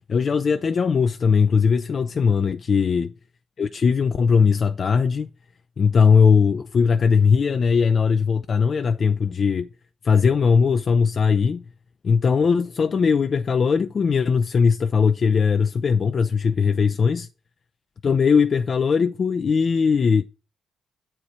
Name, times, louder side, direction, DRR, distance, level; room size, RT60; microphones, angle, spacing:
voice 1, 0.1-3.1 3.6-5.3 5.8-9.7 10.0-11.6 12.0-17.3 18.0-20.2, left 5 dB, 55° left, 0.4 m, -19 dB
7.6 x 4.4 x 6.2 m
supercardioid pair, 50°, 0 cm